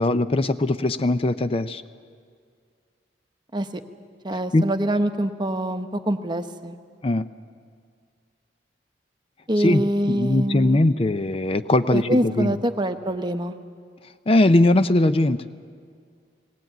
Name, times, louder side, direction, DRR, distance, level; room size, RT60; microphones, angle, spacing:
voice 1, 0.0-1.8 4.5-4.7 7.0-7.3 9.6-9.8 10.1-12.5 14.3-15.4, left 2 dB, 35° left, 12 dB, 0.5 m, -20 dB
voice 2, 4.2-6.8 9.5-10.8 11.9-13.5, right 1 dB, 25° right, 8 dB, 0.9 m, -25 dB
19.5 x 18.5 x 9.1 m, 2.1 s
head